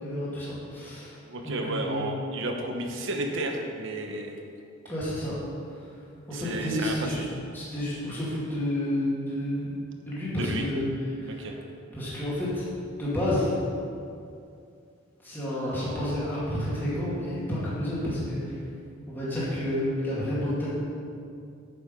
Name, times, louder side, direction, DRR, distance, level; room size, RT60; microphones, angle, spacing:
voice 1, 0.0-1.1 1.4-2.1 4.9-5.3 6.3-7.2 7.5-9.7 10.1-10.8 11.2-11.4 11.9-12.6 12.9-13.5 15.2-18.4 19.1-20.7, left 1 dB, 10° left, -10 dB, 2.4 m, -30 dB
voice 2, 1.2-4.4 6.3-7.3 10.3-10.7 11.4-11.5, right 1 dB, 65° right, 3 dB, 1.1 m, -32 dB
9.6 x 7.2 x 5.4 m, 2.4 s
head